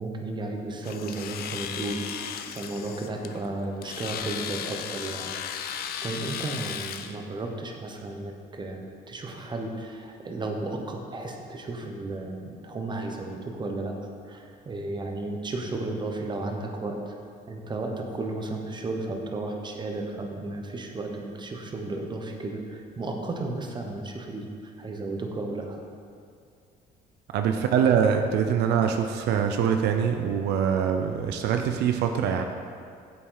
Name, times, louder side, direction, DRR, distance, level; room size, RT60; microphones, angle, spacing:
voice 1, 0.0-13.9 14.2-17.1 17.5-25.8, right 2 dB, 25° right, 2 dB, 1.0 m, -34 dB
Domestic sounds home sounds, 0.8-7.2, left 8 dB, 65° left, 0.5 m, -36 dB
voice 2, 27.3-32.4, right 7 dB, 80° right, 5 dB, 0.6 m, -24 dB
8.4 x 7.5 x 4.0 m, 2.3 s
cardioid pair, 110°, 17 cm